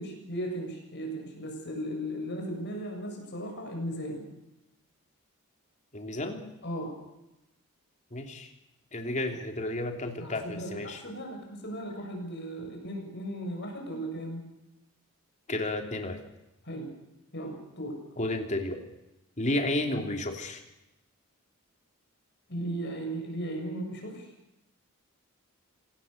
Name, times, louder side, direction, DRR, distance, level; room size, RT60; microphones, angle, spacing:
voice 1, 0.0-4.3 6.6-7.0 10.2-14.4 16.6-16.9 17.3-18.0 22.5-24.3, right 1 dB, 50° left, 2 dB, 7.0 m, -36 dB
voice 2, 5.9-6.4 8.1-8.5 8.9-11.0 15.5-16.2 18.2-18.8 19.4-20.6, left 1 dB, 30° left, 4 dB, 3.1 m, -32 dB
25.5 x 18.5 x 6.7 m, 0.92 s
head